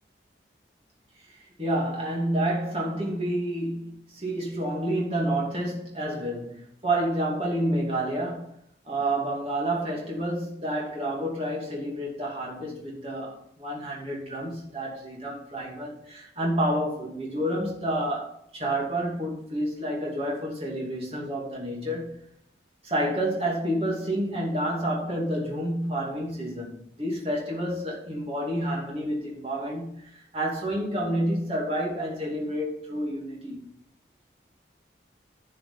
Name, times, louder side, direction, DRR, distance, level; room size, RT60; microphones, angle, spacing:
voice 1, 1.3-8.6 8.8-22.2 22.8-33.7, right 1 dB, 30° right, 2.7 m, -29 dB
11.5 x 5.7 x 5.6 m
head